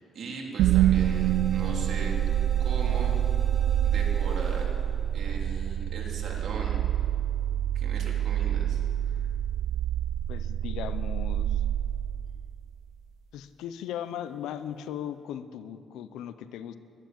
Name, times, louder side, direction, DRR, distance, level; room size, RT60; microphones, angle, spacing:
voice 1, 0.0-2.1 2.6-3.2 3.8-4.7 5.1-6.9 7.7-8.8, right 3 dB, 60° right, -1 dB, 3.3 m, -39 dB
sound 1, 0.6-12.7, right 11 dB, 85° right, 0.3 m, -27 dB
sound 2, 0.9-5.1, left 2 dB, 5° left, 4.6 m, -44 dB
voice 2, 10.3-11.6 13.3-16.8, left 10 dB, 85° left, 13 dB, 0.7 m, -38 dB
14.5 x 11.5 x 7.4 m, 2.5 s
cardioid pair, 90°, 0 cm